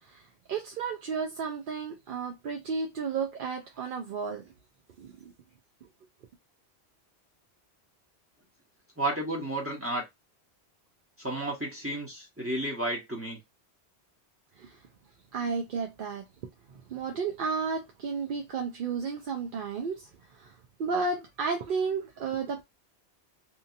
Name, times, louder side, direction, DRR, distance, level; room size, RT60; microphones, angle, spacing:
voice 1, 0.0-4.5 5.0-5.3 14.6-14.8 15.3-16.3 16.7-22.6, right 5 dB, 60° right, 0.7 m, -33 dB
voice 2, 9.0-10.0 11.2-13.4, right 1 dB, 15° right, 1.0 m, -32 dB
2.8 x 2.6 x 2.5 m
omnidirectional pair, 1.1 m